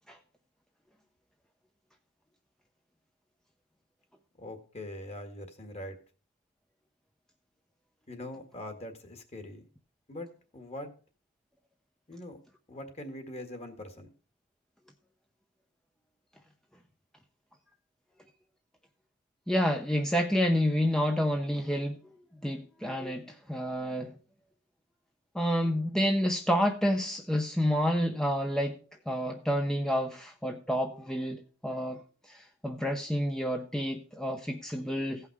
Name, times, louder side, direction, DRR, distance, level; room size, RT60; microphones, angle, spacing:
voice 1, 4.4-6.0 8.1-9.7 10.1-10.9 12.1-12.4 12.7-14.1, left 1 dB, 30° left, 7 dB, 1.8 m, -42 dB
voice 2, 19.5-22.0 22.4-24.2 25.3-28.8 29.1-35.3, equal, 5° left, 4 dB, 0.6 m, -29 dB
16.5 x 5.7 x 4.7 m, 0.38 s
head